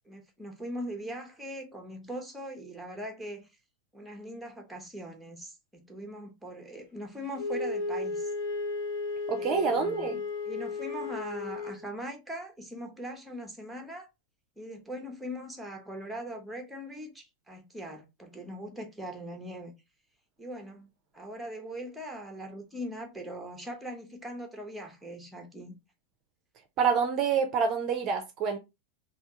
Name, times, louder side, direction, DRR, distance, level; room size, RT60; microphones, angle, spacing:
voice 1, 0.1-3.5 3.9-8.3 9.4-10.2 10.5-14.1 14.6-19.7 20.4-20.9 21.1-25.8, equal, 5° right, 0.8 m, -41 dB
Wind instrument woodwind instrument, 7.4-11.8, left 3 dB, 55° left, 0.8 m, -34 dB
voice 2, 9.3-10.2 26.8-28.6, right 6 dB, 35° right, 0.5 m, -27 dB
3.4 x 2.3 x 2.7 m
figure-of-eight pair, 90°, 0 cm